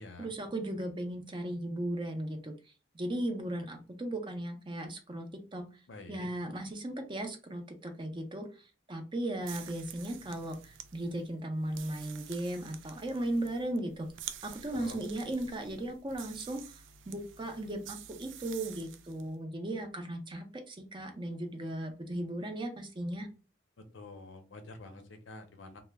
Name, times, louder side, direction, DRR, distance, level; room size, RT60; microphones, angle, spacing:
voice 1, 0.0-2.5 2.9-5.6 6.1-14.1 14.4-16.8 17.1-23.3, right 1 dB, 25° right, 5 dB, 0.5 m, -37 dB
voice 2, 5.9-6.3 14.7-15.0 23.8-25.8, left 3 dB, 90° left, 7 dB, 0.6 m, -47 dB
sound 1, 9.4-19.3, right 9 dB, 85° right, 0.3 m, -49 dB
2.2 x 2.1 x 3.3 m, 0.33 s
head